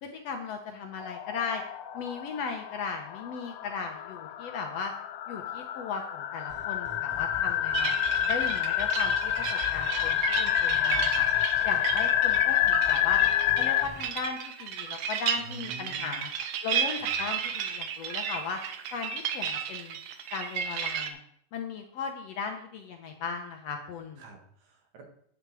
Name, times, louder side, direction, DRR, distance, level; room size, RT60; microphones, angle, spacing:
voice 1, 0.0-1.6 1.9-4.9 5.3-7.9 8.3-11.3 11.6-13.2 13.5-16.3 16.6-18.6 18.9-20.0 20.3-21.2 21.5-24.2, left 5 dB, 65° left, 3 dB, 1.7 m, -37 dB
sound 1, 1.0-13.9, left 11 dB, 90° left, 2.2 m, -28 dB
sound 2, 6.5-14.1, left 4 dB, 40° left, 1.8 m, -47 dB
sound 3, 7.7-21.1, right 8 dB, 85° right, 2.4 m, -34 dB
voice 2, 15.4-16.2 17.0-17.3 24.2-25.2, right 3 dB, 65° right, 3 dB, 2.7 m, -48 dB
9.5 x 8.9 x 4.8 m, 0.69 s
omnidirectional pair, 3.6 m